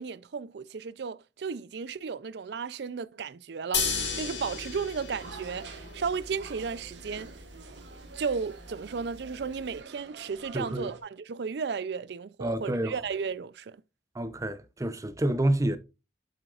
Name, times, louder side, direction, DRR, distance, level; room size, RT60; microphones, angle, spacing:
voice 1, 0.0-7.3 8.1-13.8, right 5 dB, 65° right, 0.4 m, -34 dB
sound 1, 3.7-9.8, left 5 dB, 80° left, 2.2 m, -36 dB
sound 2, 5.2-11.0, right 4 dB, 90° right, 1.3 m, -48 dB
voice 2, 10.5-10.9 12.4-13.0 14.1-15.8, right 1 dB, 20° right, 0.6 m, -28 dB
7.9 x 7.7 x 2.4 m
head